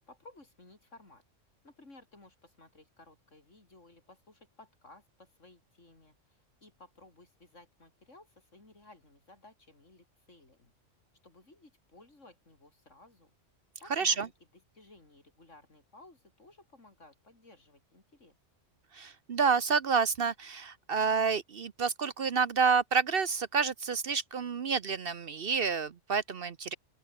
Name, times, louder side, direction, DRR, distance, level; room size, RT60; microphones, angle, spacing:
voice 1, 0.1-1.2 1.6-10.7 11.2-13.3 13.8-18.4, left 2 dB, 75° left, 5.3 m, -57 dB
voice 2, 13.9-14.3 18.9-26.7, right 5 dB, 55° right, 0.9 m, -29 dB
open air
omnidirectional pair, 1.3 m